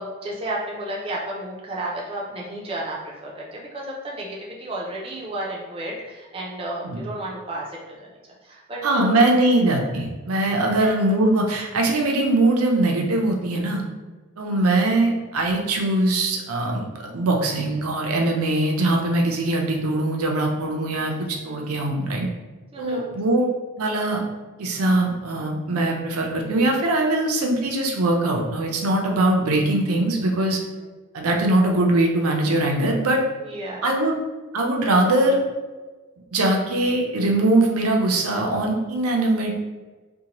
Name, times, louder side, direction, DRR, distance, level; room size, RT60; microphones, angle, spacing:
voice 1, 0.0-8.2 8.4-9.2 10.8-10.9 21.4-21.5 22.7-23.0 33.4-33.9, right 1 dB, 25° right, -4 dB, 0.5 m, -32 dB
voice 2, 8.8-13.8 14.4-21.1 21.4-22.3 22.8-23.5 23.8-24.2 24.6-30.6 31.1-33.2 33.8-34.2 34.5-35.4 36.3-39.6, right 2 dB, 85° right, 1 dB, 0.5 m, -21 dB
2.7 x 2.2 x 2.9 m, 1.3 s
head